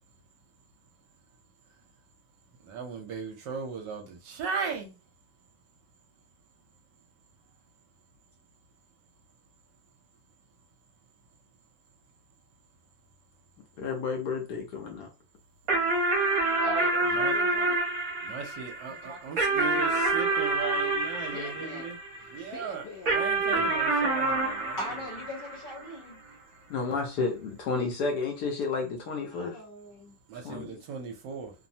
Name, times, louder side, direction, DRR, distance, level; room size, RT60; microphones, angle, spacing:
voice 1, 2.6-5.0 17.1-17.3 18.2-22.0 22.3-24.8 30.3-31.5, right 6 dB, 75° right, 1.2 m, -37 dB
voice 2, 13.8-15.1 23.5-23.7 26.7-29.6 30.4-30.8, left 4 dB, 70° left, 1.1 m, -31 dB
sound 1, 15.7-22.4 23.1-25.9, right 3 dB, 55° right, 1.2 m, -27 dB
voice 3, 16.6-17.8 18.9-20.2 21.2-21.9 22.2-23.2, left 2 dB, 85° left, 0.5 m, -41 dB
voice 4, 24.8-26.2 29.3-30.2, equal, 35° left, 1.0 m, -40 dB
3.2 x 2.0 x 2.6 m
omnidirectional pair, 2.0 m